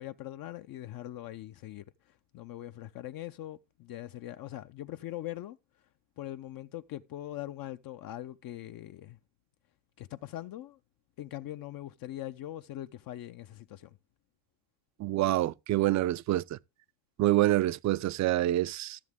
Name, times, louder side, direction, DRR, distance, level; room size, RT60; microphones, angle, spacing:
voice 1, 0.0-5.6 6.2-9.2 10.0-10.8 11.2-14.0, left 13 dB, 45° left, 0.6 m, -42 dB
voice 2, 15.0-16.6 17.2-19.0, right 15 dB, 35° right, 0.5 m, -27 dB
13.0 x 7.2 x 3.6 m
supercardioid pair, 105°, 48 cm